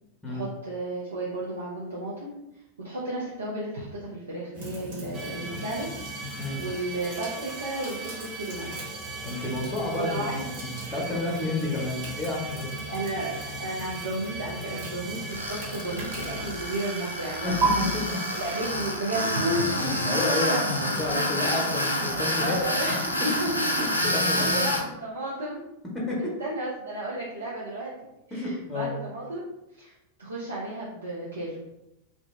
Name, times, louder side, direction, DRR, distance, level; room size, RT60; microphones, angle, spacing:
voice 1, 0.3-2.4 2.8-8.9 10.0-10.5 12.9-18.0 18.3-19.9 22.0-23.7 24.3-25.6 26.2-27.9 28.3-29.5 29.7-31.6, right 1 dB, 75° right, -6 dB, 0.6 m, -33 dB
sound 1, 4.5-17.7, right 2 dB, 50° right, 1.0 m, -38 dB
sound 2, 5.1-19.2, right 3 dB, 20° right, 0.6 m, -40 dB
voice 2, 9.2-10.2 10.5-12.7 17.4-17.7 18.1-18.2 19.8-22.6 24.1-24.6 26.1-26.2 28.3-28.9, left 2 dB, 10° left, -3 dB, 0.8 m, -30 dB
Tools, 15.3-24.8, left 1 dB, 85° left, 0.4 m, -28 dB
2.7 x 2.1 x 3.1 m, 0.92 s
figure-of-eight pair, 90°, 0 cm